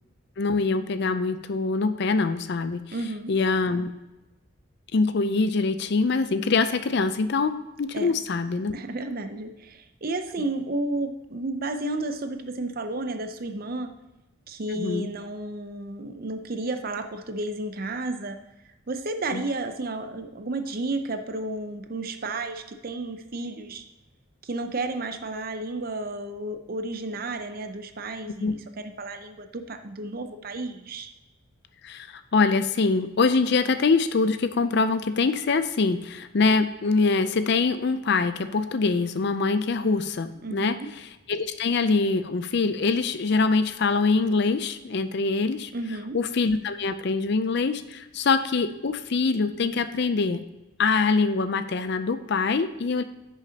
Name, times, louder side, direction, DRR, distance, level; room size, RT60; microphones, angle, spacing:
voice 1, 0.4-2.8 3.3-3.9 4.9-8.7 10.3-10.4 14.7-15.1 19.3-19.4 28.4-28.5 31.8-45.7 46.1-50.4 50.8-53.0, left 4 dB, 50° left, 11 dB, 0.5 m, -24 dB
voice 2, 2.9-3.3 7.9-8.1 8.7-13.9 14.5-18.4 18.9-23.8 24.4-31.1 40.4-40.9 45.7-46.2, right 2 dB, 45° right, 8 dB, 0.6 m, -32 dB
10.0 x 6.4 x 2.8 m, 1.0 s
head